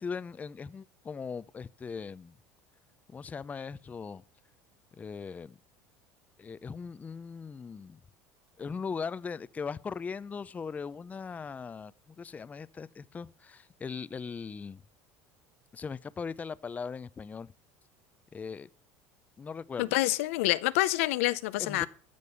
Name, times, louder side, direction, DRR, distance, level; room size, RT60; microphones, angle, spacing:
voice 1, 0.0-2.4 3.1-4.2 4.9-5.6 6.4-8.0 8.6-14.8 15.7-17.5 18.3-18.7 19.4-20.0 21.6-21.9, left 5 dB, 20° left, 0.5 m, -39 dB
voice 2, 19.8-21.9, left 18 dB, 85° left, 0.6 m, -27 dB
14.0 x 5.3 x 8.0 m
supercardioid pair, 105°, 7 cm